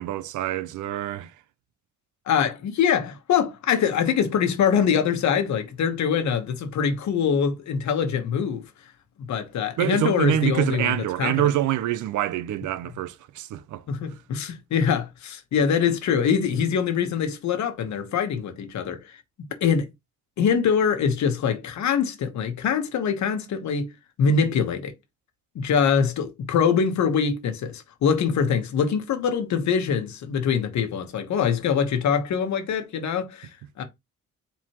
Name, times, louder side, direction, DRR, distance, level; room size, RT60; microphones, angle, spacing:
voice 1, 0.0-1.3 9.8-13.8, right 12 dB, 75° right, 0.6 m, -26 dB
voice 2, 2.3-8.7 9.2-11.4 13.9-19.2 19.6-19.9 20.4-23.9 24.2-24.9 25.5-33.5 33.8-33.9, left 7 dB, 65° left, 1.2 m, -24 dB
4.7 x 3.8 x 2.9 m
cardioid pair, 90°, 30 cm